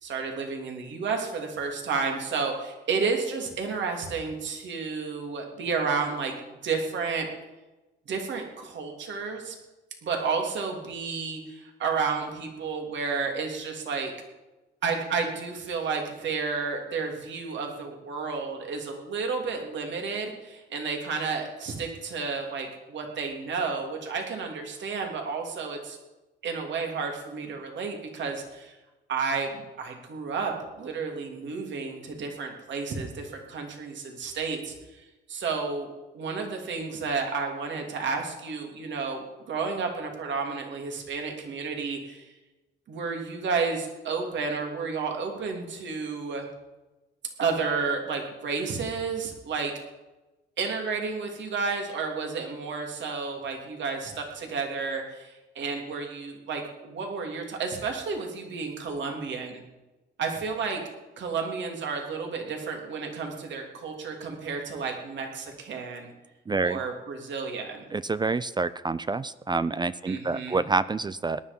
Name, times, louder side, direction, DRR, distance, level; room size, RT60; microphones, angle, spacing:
voice 1, 0.0-6.3 6.6-7.3 8.1-9.6 10.0-14.1 14.8-26.0 26.4-28.7 29.1-35.9 36.1-42.3 42.9-46.5 47.4-49.7 50.6-59.6 60.2-60.8 61.2-66.1 66.6-67.8 70.1-70.6, right 5 dB, 65° right, 2 dB, 3.3 m, -31 dB
voice 2, 66.5-66.8 67.9-71.4, right 3 dB, 20° right, 16 dB, 0.5 m, -27 dB
18.5 x 11.0 x 5.4 m, 1.1 s
cardioid pair, 90°, 20 cm